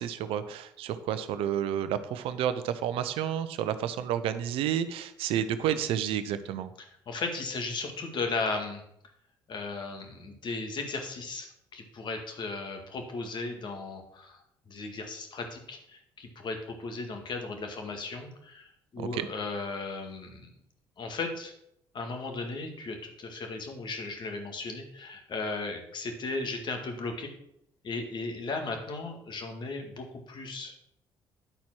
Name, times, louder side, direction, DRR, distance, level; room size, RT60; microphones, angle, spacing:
voice 1, 0.0-6.7 19.0-19.3, right 9 dB, 75° right, 12 dB, 0.7 m, -30 dB
voice 2, 7.1-8.8 9.5-20.5 21.0-21.5 21.9-27.3 27.8-30.7, left 3 dB, 55° left, 4 dB, 1.9 m, -36 dB
10.0 x 4.4 x 6.1 m, 0.74 s
hypercardioid pair, 60°, 10 cm